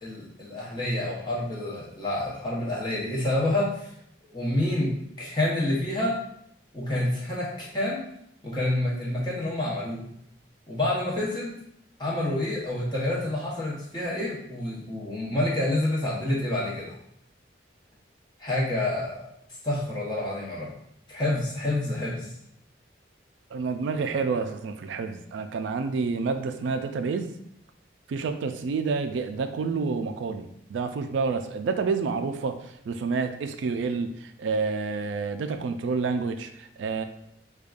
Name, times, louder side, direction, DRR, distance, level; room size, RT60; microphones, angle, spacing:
voice 1, 0.0-3.9 4.3-6.2 6.7-8.1 8.4-10.1 10.7-11.5 12.0-16.9 18.4-19.3 19.6-20.7 21.1-22.3, left 1 dB, 25° left, -5 dB, 0.9 m, -28 dB
voice 2, 23.5-27.3 28.1-32.6 32.9-37.0, right 4 dB, 80° right, 8 dB, 0.3 m, -29 dB
5.0 x 2.3 x 2.4 m, 0.73 s
head